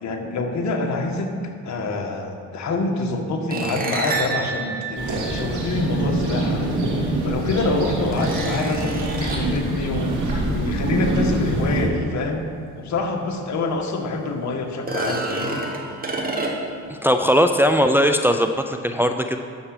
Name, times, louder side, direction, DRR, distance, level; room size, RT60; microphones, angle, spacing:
voice 1, 0.0-1.3 1.6-6.7 7.2-10.1 10.4-12.5 12.8-15.6, left 3 dB, 65° left, 3 dB, 1.7 m, -26 dB
sound 1, 3.5-6.0 7.2-7.3 8.1-9.6 12.9-13.0 13.4-13.5 14.7-16.9, right 3 dB, 30° right, 1.7 m, -28 dB
sound 2, 4.9-11.8, right 1 dB, 75° right, 2.8 m, -24 dB
voice 2, 17.0-19.4, equal, 5° right, 6 dB, 0.5 m, -19 dB
10.0 x 7.2 x 6.7 m, 2.3 s
cardioid pair, 90°, 30 cm